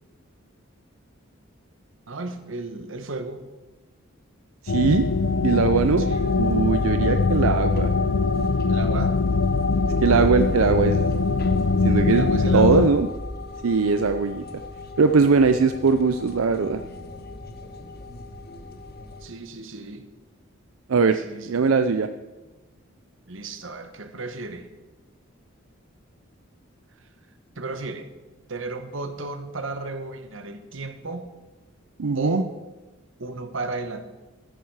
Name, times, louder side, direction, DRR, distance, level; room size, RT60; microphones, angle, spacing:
voice 1, 2.1-3.4 6.0-6.3 8.6-9.2 12.1-12.9 19.2-20.1 21.1-21.7 23.3-24.7 26.9-27.1 27.5-28.1 28.5-31.3 32.1-32.5 33.2-34.1, right 3 dB, 65° right, 8 dB, 1.2 m, -34 dB
voice 2, 4.6-5.1 5.4-6.1 6.4-7.9 10.0-11.1 11.8-13.1 13.6-14.4 15.0-16.8 20.9-21.2 21.5-22.1 32.0-32.4, right 4 dB, 90° right, 9 dB, 0.5 m, -20 dB
sound 1, 4.7-12.9, left 3 dB, 75° left, 0.6 m, -22 dB
sound 2, 6.1-19.3, left 4 dB, 50° left, 1.2 m, -36 dB
13.0 x 10.0 x 4.8 m, 1.2 s
head